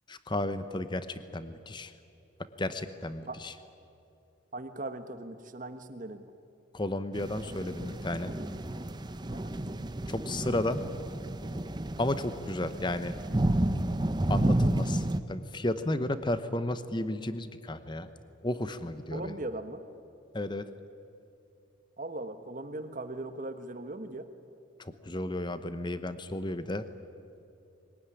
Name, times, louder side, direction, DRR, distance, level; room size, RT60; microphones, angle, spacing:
voice 1, 0.1-1.9 2.6-3.5 6.7-8.3 10.1-10.8 12.0-13.1 14.3-18.1 18.4-19.4 20.3-20.7 24.8-26.9, left 1 dB, 25° left, 12 dB, 0.9 m, -33 dB
voice 2, 4.5-6.3 9.3-9.5 19.1-19.8 22.0-24.3, right 2 dB, 40° right, 9 dB, 1.3 m, -39 dB
sound 1, 7.1-15.2, right 1 dB, 20° right, 0.7 m, -31 dB
22.0 x 19.0 x 9.9 m, 2.7 s
head